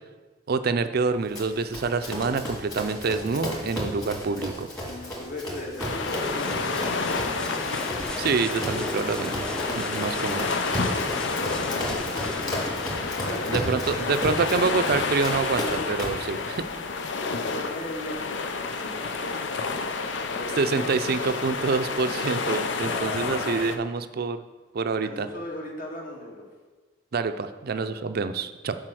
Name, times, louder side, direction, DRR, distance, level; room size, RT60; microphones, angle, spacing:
voice 1, 0.5-4.7 8.2-9.4 9.8-10.5 13.5-16.7 20.6-24.4 24.7-25.3 27.1-28.8, right 4 dB, 55° right, 10 dB, 0.5 m, -27 dB
Run, 1.3-16.3, equal, 20° left, 2.0 m, -34 dB
voice 2, 4.8-7.0 10.9-12.9 13.2-14.9 17.2-21.0 22.8-23.8 25.0-26.5 27.7-27.9, left 1 dB, 50° left, -2 dB, 1.8 m, -38 dB
sound 1, 5.8-23.8, left 4 dB, 70° left, 0.6 m, -30 dB
sound 2, 6.1-14.0, left 1 dB, 5° left, 0.6 m, -37 dB
7.6 x 4.8 x 6.2 m, 1.3 s
head